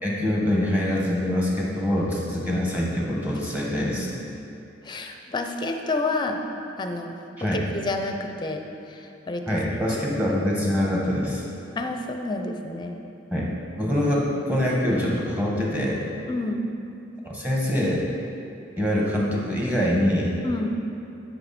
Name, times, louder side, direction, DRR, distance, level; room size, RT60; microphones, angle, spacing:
voice 1, 0.0-4.1 7.4-7.7 9.5-11.5 13.3-13.5 13.8-16.1 17.3-18.1 18.8-20.3, left 1 dB, 10° right, -4 dB, 1.3 m, -24 dB
voice 2, 4.8-6.4 6.8-7.1 7.4-8.6 8.9-9.4 11.8-13.0 16.3-16.7 20.4-20.8, left 2 dB, 25° left, 4 dB, 0.6 m, -29 dB
12.5 x 5.9 x 4.3 m, 2.7 s
head